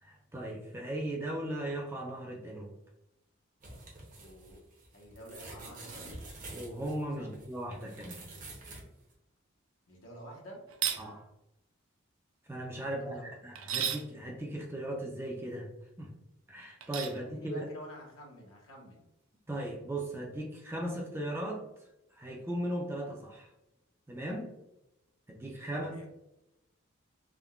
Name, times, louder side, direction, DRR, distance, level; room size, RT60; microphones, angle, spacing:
voice 1, 0.0-2.7 5.3-5.4 6.5-8.3 11.0-11.3 12.5-15.7 16.0-16.1 16.5-17.7 19.5-21.6 22.1-23.5 24.1-24.5 25.3-26.0, right 1 dB, 10° right, 0 dB, 0.4 m, -37 dB
sound 1, 3.6-8.8 9.1-9.2, right 2 dB, 40° right, 0.7 m, -48 dB
voice 2, 4.1-4.6 4.9-6.2 7.2-7.3 9.9-10.6 12.8-13.4 17.3-19.0 25.7-26.1, equal, 80° left, -2 dB, 0.9 m, -49 dB
sound 2, 10.7-11.0 13.6-14.1 16.8-17.2, right 9 dB, 80° right, 0.4 m, -33 dB
3.5 x 2.2 x 2.2 m, 0.89 s
head